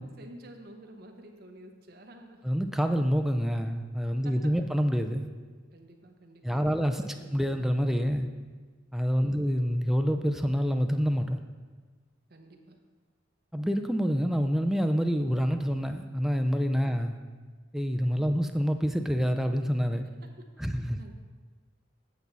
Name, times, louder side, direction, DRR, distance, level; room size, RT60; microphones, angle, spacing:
voice 1, 0.0-2.5 4.2-4.5 5.7-7.5 9.2-9.5 12.3-12.8 16.9-17.0 18.1-18.4 20.2-21.1, right 1 dB, 55° right, 3 dB, 0.9 m, -51 dB
voice 2, 2.4-5.3 6.4-7.0 7.3-8.3 8.9-11.4 13.5-17.2 17.7-20.1 20.6-21.0, equal, ahead, 6 dB, 0.4 m, -27 dB
8.3 x 6.9 x 4.0 m, 1.5 s
head